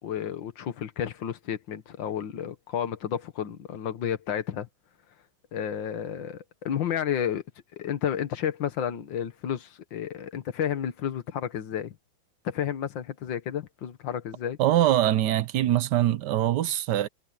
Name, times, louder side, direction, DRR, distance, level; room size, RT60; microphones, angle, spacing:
voice 1, 0.0-4.7 5.5-7.4 7.7-12.0 12.4-14.6, left 9 dB, 75° left, 2.1 m, -31 dB
voice 2, 14.6-17.1, right 13 dB, 70° right, 1.2 m, -23 dB
omnidirectional pair, 2.1 m